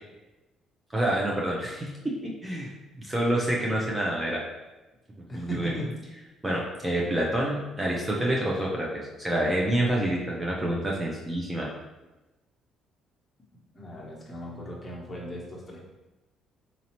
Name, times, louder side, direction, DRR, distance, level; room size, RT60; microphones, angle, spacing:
voice 1, 0.9-2.7 3.0-4.4 5.1-5.7 6.4-11.7, right 1 dB, 20° right, -3 dB, 0.5 m, -28 dB
voice 2, 5.3-5.9 13.7-15.8, equal, 20° left, -3 dB, 1.0 m, -37 dB
4.0 x 2.7 x 2.9 m, 1.1 s
cardioid pair, 95°, 0 cm